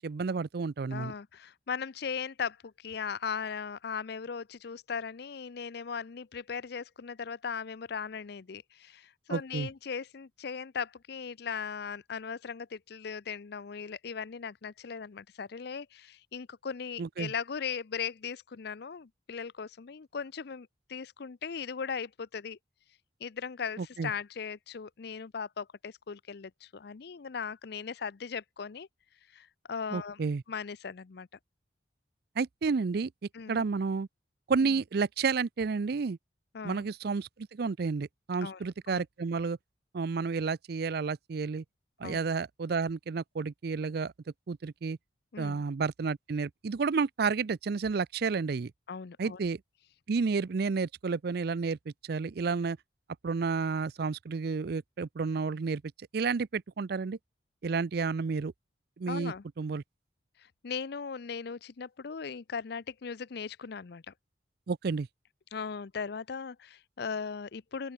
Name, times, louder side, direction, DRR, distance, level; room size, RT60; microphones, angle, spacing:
voice 1, 0.0-1.1 9.3-9.7 17.0-17.3 23.8-24.1 29.9-30.4 32.4-33.1 33.5-34.1 34.5-36.2 36.6-39.6 39.9-41.6 42.0-44.1 44.5-45.0 45.4-48.7 49.2-49.6 50.1-52.8 53.2-55.8 56.1-57.2 57.6-58.5 59.0-59.8 64.7-65.1, right 4 dB, 55° right, 0.4 m, -31 dB
voice 2, 0.9-22.6 23.2-28.9 29.3-30.2 30.5-31.3 33.3-33.6 34.6-34.8 36.5-36.9 38.4-38.6 38.9-39.0 42.0-42.2 45.3-45.6 48.9-49.4 59.1-59.4 60.4-64.1 65.5-67.9, left 6 dB, 60° left, 0.5 m, -38 dB
open air
head